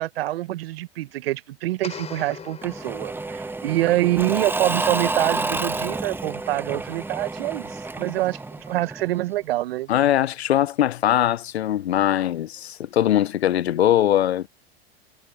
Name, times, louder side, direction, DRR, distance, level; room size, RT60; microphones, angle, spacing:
voice 1, 0.0-8.4 8.7-9.9, right 16 dB, 70° right, 1.4 m, -25 dB
sound 1, 1.8-3.8, left 6 dB, 20° left, 4.0 m, -40 dB
Engine / Mechanisms / Drill, 2.6-9.3, right 3 dB, 5° right, 1.0 m, -29 dB
voice 2, 9.9-14.5, left 11 dB, 85° left, 0.7 m, -21 dB
hypercardioid pair, 100°, 31 cm